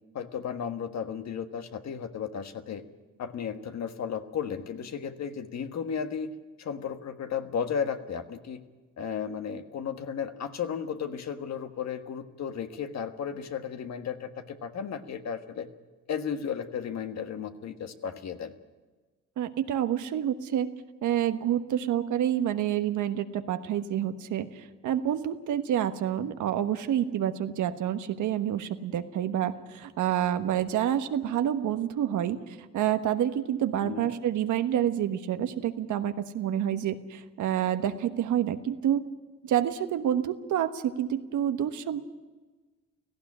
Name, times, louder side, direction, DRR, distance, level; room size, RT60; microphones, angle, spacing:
voice 1, 0.1-2.8 3.2-6.3 6.6-8.6 9.0-15.7 16.1-18.5 33.8-34.1, left 7 dB, 60° left, 7 dB, 1.6 m, -34 dB
voice 2, 19.4-20.7 21.0-39.0 39.4-42.0, right 10 dB, 80° right, 9 dB, 1.3 m, -28 dB
17.5 x 15.5 x 9.9 m, 1.3 s
cardioid pair, 90°, 30 cm